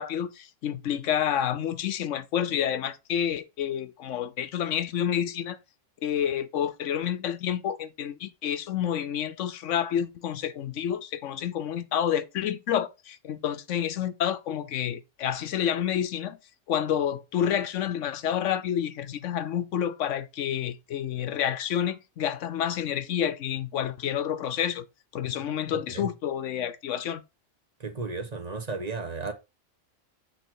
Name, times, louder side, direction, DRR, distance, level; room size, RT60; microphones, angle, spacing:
voice 1, 0.0-5.6 6.0-16.4 16.7-24.9 25.1-27.2, left 9 dB, 75° left, 1.0 m, -29 dB
voice 2, 27.8-29.3, right 4 dB, 35° right, 1.2 m, -34 dB
7.7 x 4.0 x 4.5 m
omnidirectional pair, 1.3 m